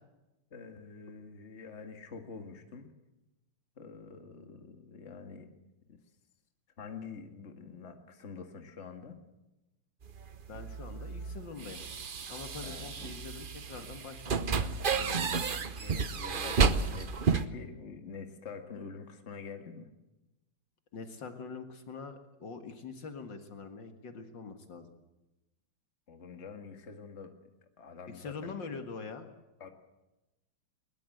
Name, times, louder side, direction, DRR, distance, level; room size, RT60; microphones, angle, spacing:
voice 1, 0.5-2.9 3.8-5.5 5.9-6.0 6.8-9.2 12.6-12.9 15.5-19.9 26.1-27.3 27.8-28.5 29.6-29.7, left 5 dB, 35° left, 5 dB, 2.0 m, -46 dB
sound 1, 10.0-17.4, right 5 dB, 55° right, 0.5 m, -32 dB
voice 2, 10.5-11.8 12.3-15.6 20.9-24.9 28.1-29.3, left 4 dB, 65° left, 6 dB, 2.4 m, -44 dB
21.0 x 20.5 x 7.9 m, 0.99 s
omnidirectional pair, 2.2 m